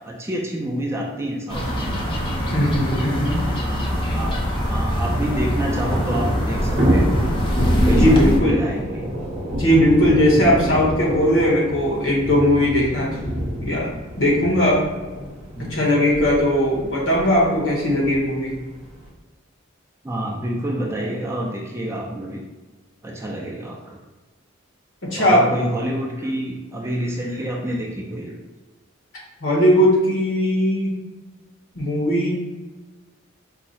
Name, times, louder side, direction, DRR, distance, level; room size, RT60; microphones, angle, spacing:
voice 1, 0.0-2.0 3.6-7.2 7.8-9.2 15.6-15.8 20.0-22.4 23.0-24.0 25.2-28.4, right 1 dB, 15° right, -1 dB, 0.4 m, -28 dB
sound 1, 1.5-8.4, equal, 25° left, 0.6 m, -23 dB
voice 2, 2.5-3.4 4.0-4.1 8.0-8.6 9.6-13.3 13.6-13.9 14.2-14.8 15.6-18.6 25.1-25.4 29.4-31.0 31.7-32.3, equal, 70° left, -3 dB, 1.3 m, -18 dB
Thunder / Rain, 3.7-19.1, equal, 30° right, 1.0 m, -27 dB
4.6 x 2.2 x 4.1 m, 1.3 s
head